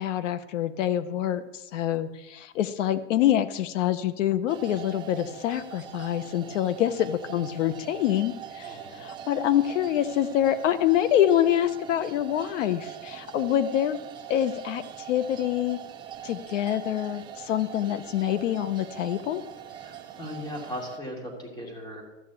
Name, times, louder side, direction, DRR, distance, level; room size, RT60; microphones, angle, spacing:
voice 1, 0.0-1.4 1.7-14.0 14.3-15.8 16.2-19.4, left 11 dB, 70° left, 12 dB, 1.2 m, -26 dB
sound 1, 4.5-21.0, right 10 dB, 10° right, 0.5 m, -42 dB
voice 2, 8.6-9.0 19.7-22.0, left 1 dB, 10° left, 1 dB, 2.7 m, -38 dB
14.5 x 6.5 x 8.2 m, 0.96 s
supercardioid pair, 165°, 39 cm